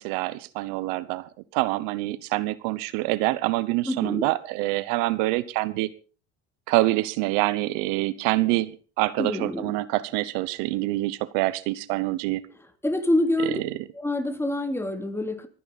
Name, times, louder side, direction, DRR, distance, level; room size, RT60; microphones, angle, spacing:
voice 1, 0.0-5.9 6.7-12.4, right 19 dB, 75° right, 17 dB, 1.0 m, -26 dB
voice 2, 3.9-4.3 9.2-9.7 12.8-13.6 13.9-15.5, left 1 dB, 5° left, 7 dB, 2.9 m, -26 dB
25.0 x 9.9 x 4.1 m, 0.37 s
supercardioid pair, 85°, 32 cm